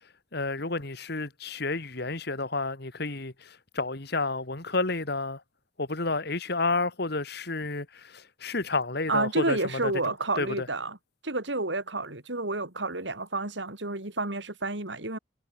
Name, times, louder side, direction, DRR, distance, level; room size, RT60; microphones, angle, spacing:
voice 1, 0.3-5.4 5.8-9.6 9.8-9.9 10.4-10.7, left 3 dB, 60° left, 2.6 m, -30 dB
voice 2, 9.1-11.0 11.2-15.2, right 2 dB, 70° right, 3.9 m, -30 dB
head